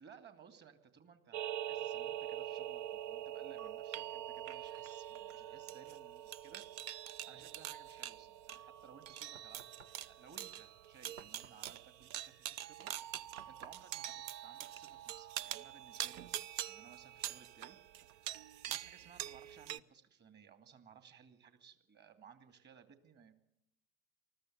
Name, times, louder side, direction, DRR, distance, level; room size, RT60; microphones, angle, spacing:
voice 1, 0.0-9.6 10.1-17.8 18.7-23.3, right 7 dB, 30° right, 9 dB, 2.6 m, -60 dB
sound 1, 1.3-19.8, right 12 dB, 50° right, 0.7 m, -44 dB
Knock, 9.3-15.3, right 6 dB, 80° right, 1.2 m, -59 dB
20.0 x 14.0 x 9.4 m, 0.80 s
figure-of-eight pair, 80°, 34 cm